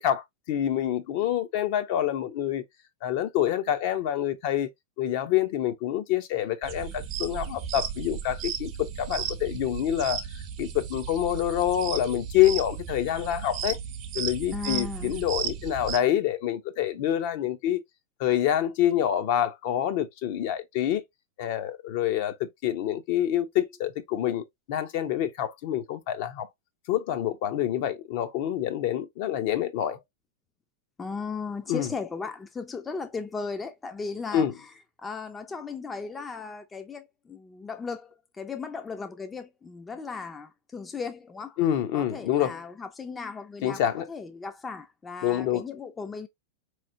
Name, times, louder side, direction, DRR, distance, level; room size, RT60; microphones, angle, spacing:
voice 1, 0.0-2.6 3.0-4.7 5.0-13.8 14.1-17.8 18.2-21.0 21.4-26.5 26.9-30.0 31.7-31.9 34.3-34.5 41.6-42.6 43.6-44.1 45.2-45.6, left 11 dB, 55° left, 0.8 m, -27 dB
sound 1, 6.6-16.0, right 8 dB, 40° right, 0.8 m, -35 dB
voice 2, 14.5-15.1 31.0-34.5 35.0-41.6 41.9-43.8 44.1-46.3, left 4 dB, 15° left, 0.6 m, -36 dB
4.1 x 3.2 x 2.7 m
hypercardioid pair, 100°, 0 cm